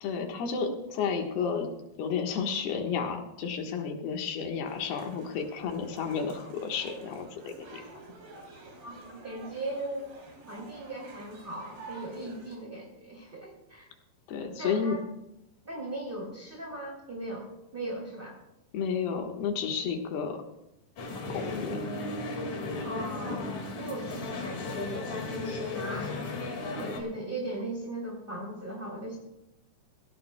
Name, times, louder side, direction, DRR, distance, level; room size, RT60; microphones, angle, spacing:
voice 1, 0.0-1.7 2.0-7.8 14.3-15.0 18.7-20.4 21.3-21.8, left 6 dB, 65° left, 3 dB, 3.0 m, -32 dB
sound 1, 4.7-12.6, right 3 dB, 75° right, 5.5 m, -49 dB
voice 2, 8.8-10.1 10.5-13.9 14.6-15.0 15.6-17.5 17.7-18.3 22.8-23.4 23.7-26.2 26.7-29.2, right 1 dB, 25° right, -3 dB, 1.2 m, -38 dB
sound 2, 21.0-27.0, left 3 dB, 50° left, 2.7 m, -35 dB
18.0 x 16.5 x 2.2 m, 0.88 s
omnidirectional pair, 5.2 m